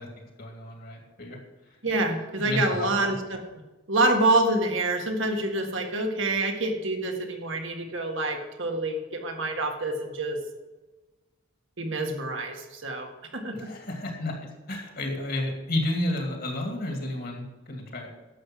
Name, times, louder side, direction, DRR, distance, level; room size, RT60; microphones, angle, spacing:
voice 1, 0.0-1.4 2.4-2.9 13.5-14.3 14.7-18.1, left 1 dB, 45° left, 2 dB, 2.3 m, -31 dB
voice 2, 1.8-3.4 3.9-10.4 11.8-13.7, right 2 dB, 60° right, 3 dB, 1.6 m, -27 dB
11.5 x 7.5 x 6.1 m, 1.2 s
head